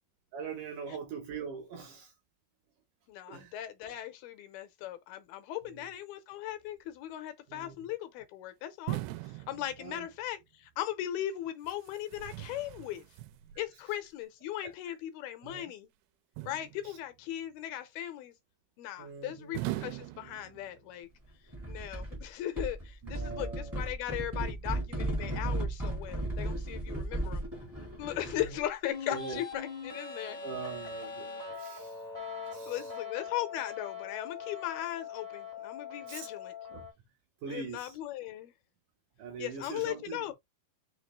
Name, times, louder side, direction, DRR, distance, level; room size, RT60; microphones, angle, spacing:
voice 1, 0.3-2.1 3.3-3.6 5.7-5.9 7.5-7.9 9.8-10.1 14.9-15.0 15.4-15.7 16.8-17.0 19.0-19.6 23.0-23.9 28.3-28.6 29.1-29.4 30.4-32.0 32.5-32.9 36.1-36.3 36.7-36.9 37.4-38.0 39.2-40.3, right 5 dB, 70° right, 2.0 m, -42 dB
voice 2, 3.1-13.0 13.6-15.9 16.4-18.3 18.8-21.1 21.7-27.4 28.0-30.4 32.7-36.5 37.5-38.5 39.4-40.3, left 12 dB, 85° left, 2.5 m, -38 dB
sound 1, 8.9-10.3 11.6-13.7 16.4-17.2 19.5-21.0, right 17 dB, 90° right, 2.6 m, -40 dB
sound 2, 21.5-22.2 22.6-28.6, right 1 dB, 15° right, 0.6 m, -35 dB
sound 3, 28.9-36.9, left 6 dB, 45° left, 0.5 m, -42 dB
5.9 x 2.9 x 3.1 m
omnidirectional pair, 4.6 m